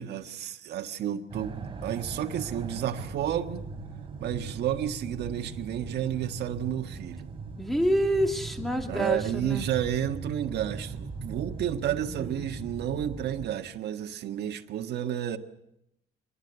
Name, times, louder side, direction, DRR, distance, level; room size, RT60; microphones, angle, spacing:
voice 1, 0.0-3.6 4.2-7.3 8.9-15.4, right 10 dB, 80° right, 1.5 m, -31 dB
sound 1, 1.3-13.5, right 4 dB, 30° right, 3.7 m, -39 dB
voice 2, 7.6-9.7 12.1-12.5, equal, ahead, 2.6 m, -27 dB
25.5 x 20.0 x 8.2 m
cardioid pair, 150°, 17 cm